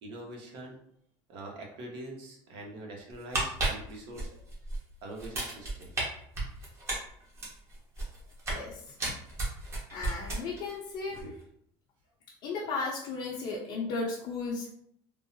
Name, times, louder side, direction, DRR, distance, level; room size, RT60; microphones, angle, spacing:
voice 1, 0.0-0.8 1.3-4.3 5.0-5.9 11.2-11.3, right 1 dB, 60° right, -1 dB, 1.0 m, -44 dB
sound 1, 3.1-4.8 5.2-6.0 6.3-8.7 9.0-10.7 11.0-11.2, right 2 dB, 25° right, 1.1 m, -33 dB
voice 2, 8.5-8.8 9.9-11.2 12.4-14.7, left 3 dB, 55° left, -3 dB, 0.6 m, -35 dB
3.6 x 2.0 x 2.7 m, 0.68 s
supercardioid pair, 130°, 10 cm